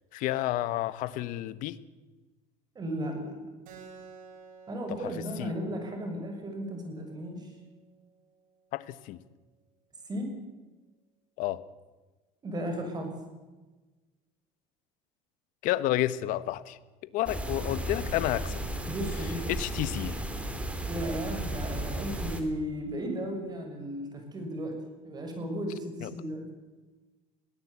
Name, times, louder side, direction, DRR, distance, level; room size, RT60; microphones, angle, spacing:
voice 1, 0.1-1.8 5.0-5.1 5.4-5.5 8.7-9.2 11.4-11.6 15.6-16.8 17.1-18.6 19.5-20.2 26.0-26.1, left 15 dB, 65° left, 15 dB, 1.2 m, -30 dB
voice 2, 2.7-3.5 4.7-7.5 10.0-10.3 12.4-13.1 18.9-19.5 20.9-26.5, equal, 25° right, 5 dB, 6.5 m, -35 dB
Keyboard (musical), 3.6-8.7, right 5 dB, 65° right, 7.3 m, -53 dB
sound 1, 17.3-22.4, right 1 dB, 10° right, 3.3 m, -34 dB
22.0 x 18.0 x 8.4 m, 1.2 s
supercardioid pair, 120°, 15 cm